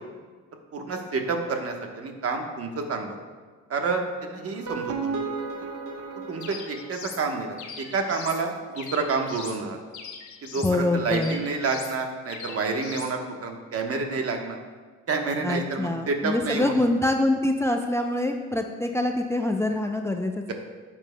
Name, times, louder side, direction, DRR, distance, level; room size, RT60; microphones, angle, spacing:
voice 1, 0.7-3.2 3.7-5.2 6.3-7.5 7.8-9.8 10.5-14.6 15.1-16.8, right 4 dB, 50° right, 3 dB, 1.1 m, -29 dB
sound 1, 4.4-7.6, right 4 dB, 75° right, 1.2 m, -34 dB
sound 2, 6.4-7.2 7.6-8.4 8.8-9.6 9.9-10.8 11.1-12.0 12.3-13.1, left 5 dB, 70° left, 1.2 m, -40 dB
voice 2, 10.6-11.4 15.4-20.5, left 1 dB, 10° left, 4 dB, 0.5 m, -25 dB
11.5 x 7.3 x 2.2 m, 1.5 s
cardioid pair, 90°, 30 cm